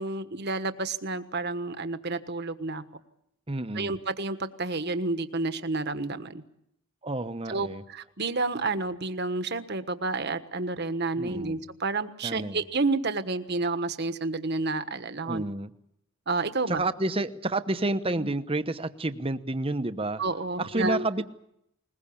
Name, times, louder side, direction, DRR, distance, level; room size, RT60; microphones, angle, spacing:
voice 1, 0.0-2.8 3.7-6.4 7.5-15.4 16.3-16.8 18.2-18.3 20.2-21.2, right 3 dB, 50° right, 10 dB, 1.4 m, -30 dB
voice 2, 3.5-3.9 7.0-7.8 11.2-11.6 12.2-12.6 15.2-15.7 16.7-20.2 20.6-21.2, right 2 dB, 25° right, 11 dB, 1.0 m, -29 dB
21.5 x 21.0 x 8.6 m, 0.76 s
head